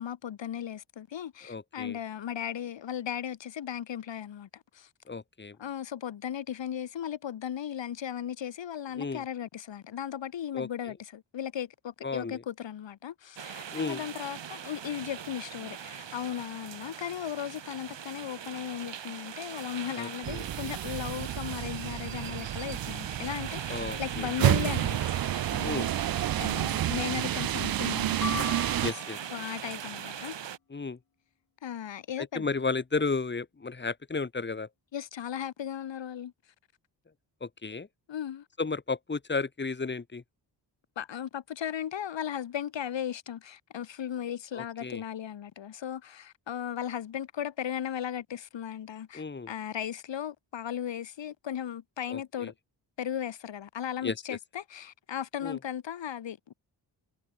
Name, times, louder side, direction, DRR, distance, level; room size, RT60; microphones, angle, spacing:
voice 1, 0.0-4.9 5.6-25.9 26.4-28.5 29.3-30.4 31.6-32.5 34.9-36.3 38.1-38.4 41.0-52.5 53.0-56.5, left 9 dB, 85° left, 1.8 m, -36 dB
voice 2, 1.4-2.0 5.1-5.6 9.0-9.2 10.5-11.0 12.0-12.4 13.7-14.1 19.9-20.5 23.7-24.6 25.6-25.9 28.8-29.2 30.7-31.0 32.2-34.7 37.4-37.9 38.6-40.2 44.5-45.0 49.1-49.5 52.1-52.5 54.0-54.2 55.4-55.6, left 4 dB, 25° left, 2.5 m, -33 dB
sound 1, 13.4-30.6, right 8 dB, 85° right, 5.1 m, -41 dB
sound 2, 20.2-28.9, right 12 dB, 55° right, 0.5 m, -30 dB
sound 3, 28.2-29.5, left 7 dB, 55° left, 4.8 m, -38 dB
wide cardioid pair, 180°, 43 cm